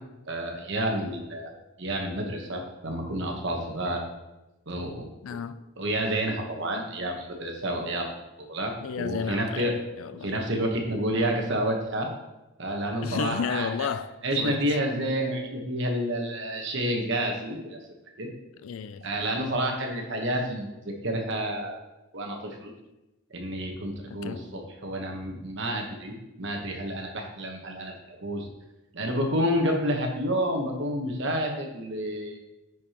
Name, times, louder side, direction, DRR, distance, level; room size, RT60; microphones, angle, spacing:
voice 1, 0.2-1.5 1.8-4.0 4.7-5.1 5.8-8.1 8.5-9.7 10.2-12.1 12.6-13.7 14.2-17.8 18.2-18.3 19.0-21.8 22.1-22.7 23.3-28.5 28.9-32.4, right 1 dB, 55° right, 1.1 m, -29 dB
voice 2, 5.2-5.6 8.8-10.3 13.0-14.6 18.6-19.0 24.1-24.4, left 6 dB, 70° left, 0.3 m, -32 dB
9.7 x 4.7 x 2.9 m
head